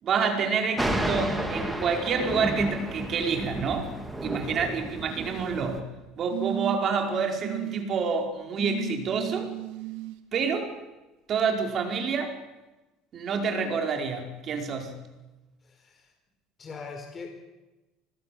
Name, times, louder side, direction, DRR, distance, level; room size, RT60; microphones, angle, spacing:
voice 1, 0.0-3.9 4.2-5.8 6.2-9.5 10.3-10.8 11.3-12.3 13.1-15.0, right 5 dB, 40° right, 4 dB, 4.9 m, -28 dB
Thunder, 0.8-5.8, right 1 dB, 5° right, 3.4 m, -31 dB
sound 1, 5.0-5.6 6.3-7.0 7.4-7.8 8.6-10.2 11.4-11.5, right 14 dB, 80° right, 2.2 m, -35 dB
voice 2, 15.6-16.1 16.6-17.3, left 5 dB, 25° left, 4 dB, 4.3 m, -41 dB
25.5 x 20.0 x 7.8 m, 1.1 s
cardioid pair, 135°, 0 cm